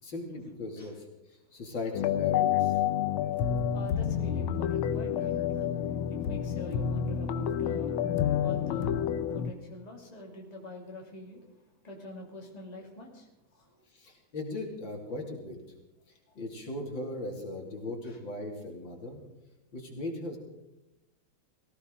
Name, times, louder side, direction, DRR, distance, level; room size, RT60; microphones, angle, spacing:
voice 1, 0.0-2.7 13.9-15.6 16.1-19.2 19.7-20.4, left 2 dB, 65° left, 1 dB, 3.5 m, -38 dB
sound 1, 1.9-9.5, left 9 dB, 80° left, 1.6 m, -29 dB
voice 2, 3.7-8.0 8.4-13.8 16.3-16.4 18.0-18.2, left 1 dB, 20° left, -1 dB, 2.8 m, -45 dB
18.5 x 16.5 x 3.9 m, 0.95 s
omnidirectional pair, 2.3 m